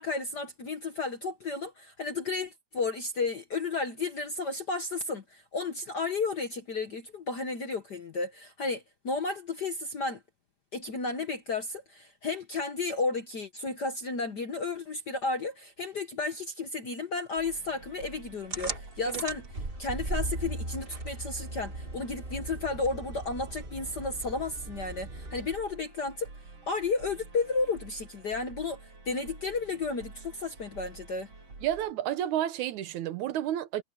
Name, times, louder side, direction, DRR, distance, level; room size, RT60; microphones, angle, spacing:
voice 1, 0.0-10.2 10.7-19.4 19.8-26.3 26.7-28.8 29.0-31.3, left 3 dB, 50° left, 1.2 m, -33 dB
sound 1, 17.4-31.9, right 3 dB, 50° right, 5.6 m, -49 dB
sound 2, 18.5-25.7, right 2 dB, 25° right, 1.7 m, -38 dB
voice 2, 31.6-33.8, right 12 dB, 80° right, 2.4 m, -31 dB
omnidirectional pair, 3.4 m